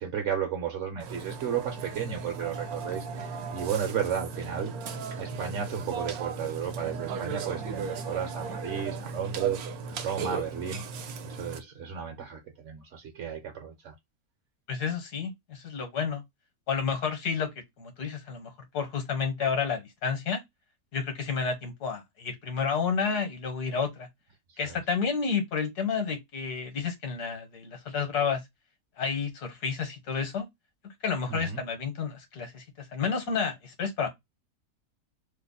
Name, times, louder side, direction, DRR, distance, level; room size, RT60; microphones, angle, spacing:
voice 1, 0.0-4.7 5.1-13.9 24.5-24.8 31.3-31.6, right 8 dB, 60° right, 0.9 m, -34 dB
Burping eructation, 1.0-11.6, right 5 dB, 75° right, 1.1 m, -36 dB
voice 2, 14.7-16.2 16.7-17.5 17.8-20.4 20.9-24.1 24.6-28.4 29.0-30.5 30.8-34.1, left 6 dB, 80° left, 1.6 m, -30 dB
3.3 x 2.0 x 3.8 m
omnidirectional pair, 1.7 m